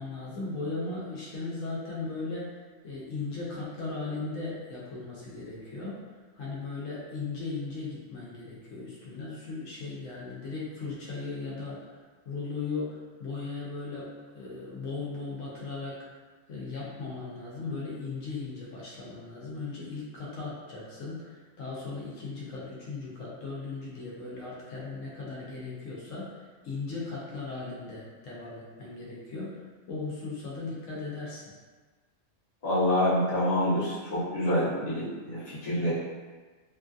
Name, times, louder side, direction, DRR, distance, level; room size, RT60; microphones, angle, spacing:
voice 1, 0.0-2.6 2.8-6.0 6.3-11.9 12.3-16.1 16.5-29.6 29.9-31.4, left 3 dB, 80° left, -5 dB, 1.0 m, -37 dB
voice 2, 32.6-35.9, left 1 dB, 35° left, -10 dB, 1.0 m, -27 dB
3.1 x 2.5 x 2.3 m, 1.4 s
omnidirectional pair, 1.3 m